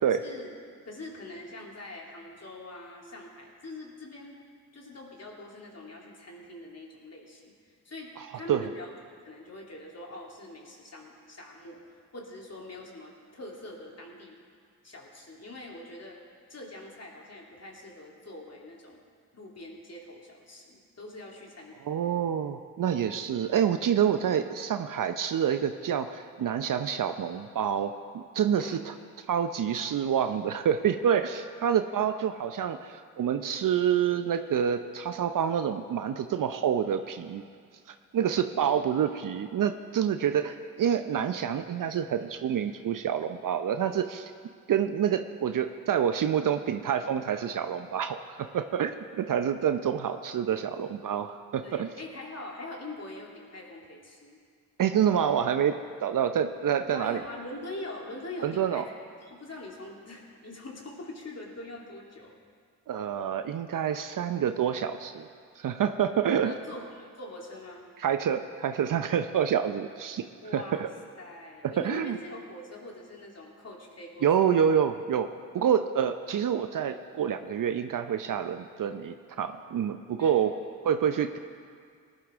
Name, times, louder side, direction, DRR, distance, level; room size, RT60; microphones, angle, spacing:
voice 1, 0.1-0.5 0.8-4.4 4.7-7.5 7.8-8.9 9.2-11.8 12.1-14.4 14.8-16.2 16.5-19.0 19.3-22.2 28.6-28.9 38.6-38.9 51.6-54.4 56.9-58.9 59.2-62.3 66.4-67.9 70.4-70.8 71.2-74.3 80.2-80.5, left 1 dB, 40° left, -2 dB, 3.2 m, -43 dB
voice 2, 21.8-28.9 29.3-37.4 37.9-44.3 44.7-51.9 54.8-57.2 58.4-58.8 62.9-65.3 65.6-66.5 68.0-70.2 70.5-70.9 71.6-72.2 74.2-75.3 75.5-80.5 80.8-81.4, right 8 dB, 50° right, 9 dB, 0.7 m, -27 dB
18.5 x 11.5 x 3.6 m, 2.2 s
hypercardioid pair, 40°, 41 cm